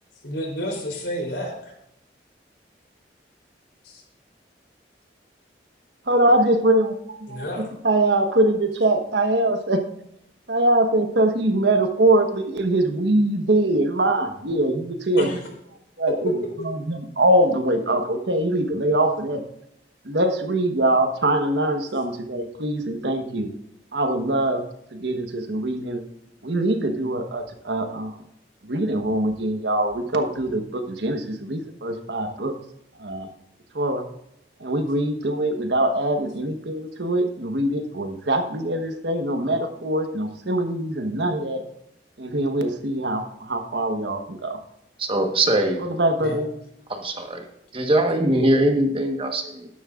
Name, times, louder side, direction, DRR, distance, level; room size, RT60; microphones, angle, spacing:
voice 1, 0.2-1.7 3.8-4.0 7.3-7.7 15.2-15.4 46.2-46.4, equal, 80° left, 1 dB, 3.5 m, -30 dB
voice 2, 6.1-7.4 7.8-9.8 10.5-15.3 16.0-16.3 16.6-19.4 20.0-23.5 23.9-24.6 24.9-26.0 26.4-28.1 28.6-32.5 33.0-33.3 33.7-34.0 34.6-41.6 42.2-44.6 45.8-46.5, right 1 dB, 75° right, 5 dB, 1.3 m, -23 dB
voice 3, 45.0-45.8 46.9-47.4 47.7-49.7, right 1 dB, 30° right, 4 dB, 1.3 m, -21 dB
12.5 x 11.0 x 2.5 m, 0.80 s
head